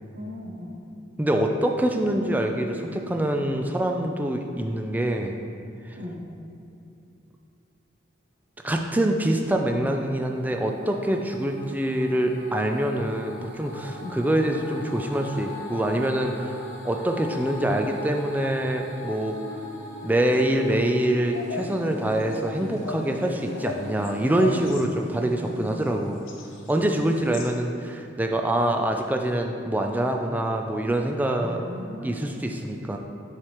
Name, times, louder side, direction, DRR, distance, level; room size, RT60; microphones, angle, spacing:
voice 1, 0.1-0.7 5.9-6.2 14.0-14.2 24.9-25.7 31.4-32.1, left 1 dB, 55° right, -2 dB, 1.0 m, -38 dB
voice 2, 1.2-5.4 8.6-19.4 20.0-26.2 26.7-31.6 32.0-33.0, right 1 dB, 10° right, 3 dB, 0.3 m, -25 dB
sound 1, 9.7-24.7, left 1 dB, 35° left, 1.4 m, -40 dB
sound 2, 21.3-26.8 27.1-27.5, left 3 dB, 85° left, 0.7 m, -38 dB
7.3 x 4.9 x 3.0 m, 2.7 s
head